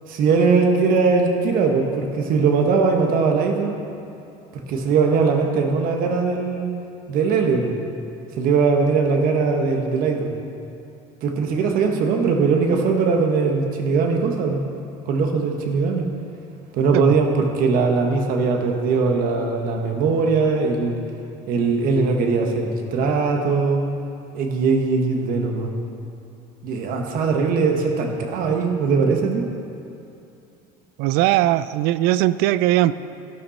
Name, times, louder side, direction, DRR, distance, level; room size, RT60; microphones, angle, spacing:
voice 1, 0.1-3.7 4.7-6.7 7.1-7.7 8.4-10.3 11.2-14.6 15.0-16.0 16.7-21.0 21.5-23.8 24.3-25.7 26.6-29.5, right 4 dB, 60° right, 3 dB, 1.5 m, -20 dB
voice 2, 31.0-33.1, right 14 dB, 75° right, 16 dB, 0.4 m, -19 dB
12.5 x 11.5 x 4.3 m, 2.7 s
cardioid pair, 145°, 17 cm